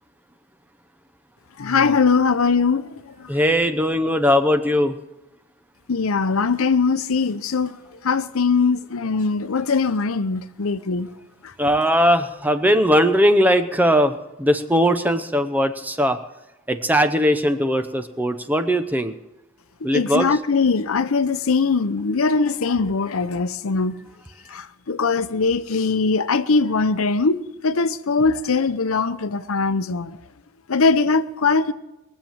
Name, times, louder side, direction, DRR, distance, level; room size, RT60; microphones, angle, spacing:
voice 1, 1.6-3.3 5.9-7.8 8.0-11.1 19.9-23.9 24.5-30.2 30.7-31.7, left 4 dB, 75° left, 0.7 m, -21 dB
voice 2, 3.3-5.0 11.6-16.2 16.7-19.2 19.8-20.3, equal, 10° right, 0.7 m, -19 dB
22.0 x 7.5 x 7.3 m
head